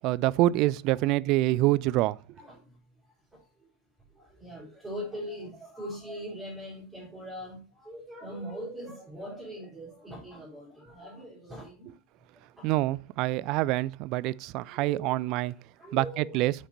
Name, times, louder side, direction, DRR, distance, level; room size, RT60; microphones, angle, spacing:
voice 1, 0.0-2.2 12.6-15.5 15.9-16.5, right 17 dB, 45° right, 0.3 m, -26 dB
voice 2, 4.2-11.9 12.6-12.7 14.7-15.0 15.8-16.4, equal, 5° right, 4.2 m, -41 dB
8.6 x 5.2 x 4.2 m
figure-of-eight pair, 85°, 0 cm